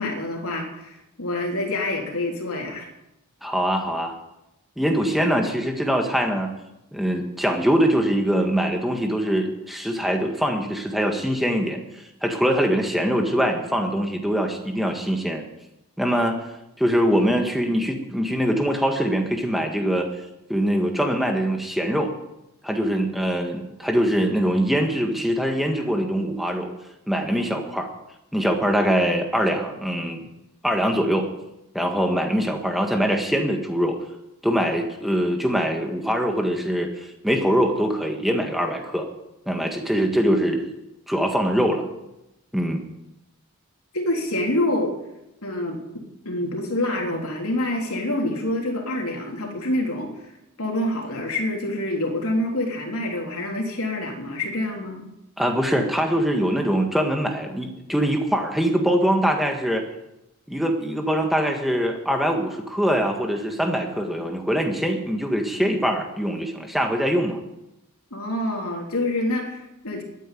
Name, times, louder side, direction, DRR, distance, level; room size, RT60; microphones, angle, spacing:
voice 1, 0.0-2.9 43.9-45.0 45.4-45.8 46.2-50.1 50.6-55.1 68.1-70.0, left 1 dB, 85° left, 0 dB, 3.5 m, -26 dB
voice 2, 3.4-4.1 4.8-6.5 6.9-11.8 12.2-15.4 16.0-16.4 16.8-20.1 20.5-22.1 22.6-26.7 27.1-27.9 28.3-30.2 30.6-31.3 31.7-34.0 34.4-39.1 39.5-40.6 41.1-41.8 42.5-42.8 55.4-59.8 60.5-67.4, equal, ahead, 3 dB, 1.6 m, -23 dB
13.0 x 9.3 x 9.4 m, 0.91 s
head